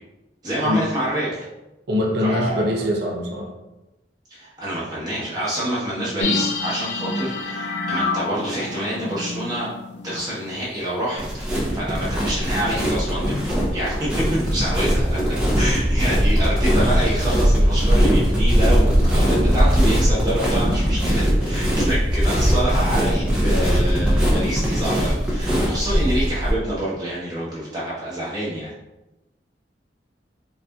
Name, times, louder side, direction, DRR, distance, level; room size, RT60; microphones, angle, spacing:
voice 1, 0.4-1.4 2.2-2.7 4.3-9.7 10.0-28.7, right 1 dB, 20° right, -8 dB, 1.1 m, -27 dB
voice 2, 1.9-3.5, left 1 dB, 60° right, 0 dB, 0.6 m, -23 dB
sound 1, 6.2-10.6 10.9-11.0, left 3 dB, 70° left, 0.5 m, -28 dB
sound 2, 11.2-26.5, equal, 5° right, 0.6 m, -20 dB
4.0 x 2.5 x 2.3 m, 0.97 s
head